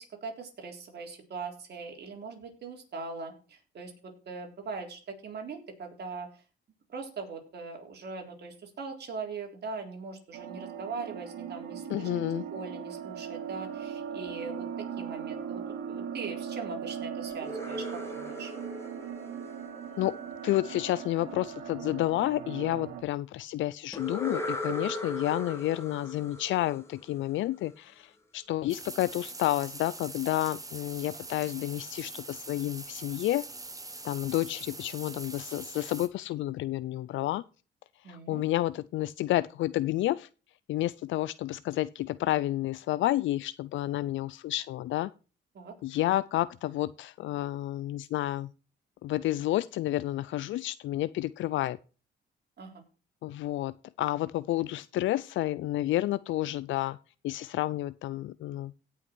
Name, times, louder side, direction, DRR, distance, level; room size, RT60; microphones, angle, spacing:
voice 1, 0.0-6.3 6.9-12.1 12.5-14.7 15.0-18.5 38.0-38.4 45.5-45.7 52.6-52.8, right 4 dB, 55° right, 3.7 m, -41 dB
sound 1, 10.3-23.0, right 8 dB, 90° right, 2.0 m, -39 dB
voice 2, 11.9-12.4 20.0-20.1 20.4-33.4 34.0-37.4 38.0-40.3 40.7-45.1 45.8-48.5 49.0-51.8 53.2-57.0 57.2-58.7, left 15 dB, 75° left, 0.4 m, -30 dB
sound 2, 17.3-20.3 23.9-27.6, left 1 dB, 15° left, 2.7 m, -38 dB
sound 3, 28.7-36.1, right 2 dB, 15° right, 1.5 m, -43 dB
17.0 x 5.8 x 4.5 m
cardioid pair, 90°, 20 cm